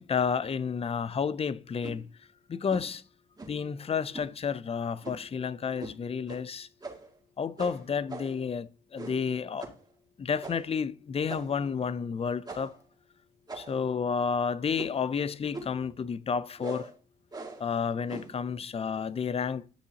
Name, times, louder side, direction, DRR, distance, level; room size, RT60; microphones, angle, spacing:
voice 1, 0.0-2.1 2.5-3.0 3.5-6.7 7.4-9.7 10.2-12.7 13.5-16.9 17.6-19.6, left 6 dB, 30° left, 0.5 m, -31 dB
sound 1, 1.8-2.0 2.7-2.9 3.4-3.7 4.1-4.3 5.0-5.3 5.8-6.0 6.3-6.4 6.8-7.2 7.6-8.4 8.9-9.3 9.6-9.8 10.4-10.7 11.3-11.7 12.4-12.8 13.5-13.9 14.7-15.1 15.5-15.8 16.6-16.9 17.3-17.7 18.1-18.4, right 3 dB, 20° right, 2.2 m, -42 dB
11.0 x 6.7 x 2.9 m
cardioid pair, 90°, 20 cm